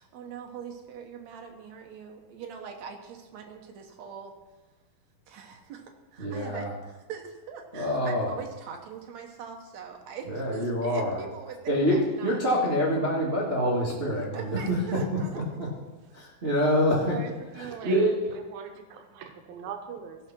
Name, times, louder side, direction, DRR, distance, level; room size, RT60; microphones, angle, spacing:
voice 1, 0.0-4.3 5.3-6.7 7.1-11.6 11.9-12.8 14.1-15.4, right 6 dB, 70° right, 4 dB, 1.8 m, -42 dB
voice 2, 6.2-6.7 7.7-8.3 10.3-11.2 11.7-14.8 15.3-15.7 16.1-17.2 17.5-18.1, equal, 45° right, -5 dB, 0.7 m, -26 dB
voice 3, 17.1-18.1 18.5-20.2, right 9 dB, 85° right, 5 dB, 2.6 m, -38 dB
15.5 x 5.7 x 5.9 m, 1.2 s
omnidirectional pair, 4.2 m